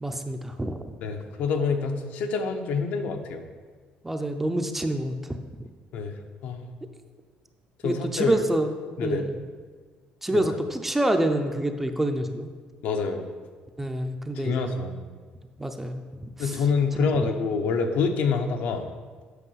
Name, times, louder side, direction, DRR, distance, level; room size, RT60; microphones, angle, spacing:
voice 1, 0.0-1.0 4.0-5.4 7.8-8.7 9.0-9.4 10.2-12.5 13.8-14.7 15.6-16.6, right 1 dB, 10° right, 6 dB, 0.5 m, -27 dB
voice 2, 1.0-3.5 5.9-6.2 6.4-6.7 7.8-8.4 9.0-9.3 10.3-10.5 12.8-13.3 14.3-15.0 16.4-18.9, left 4 dB, 75° left, 5 dB, 0.8 m, -26 dB
8.1 x 5.6 x 5.6 m, 1.5 s
cardioid pair, 150°, 3 cm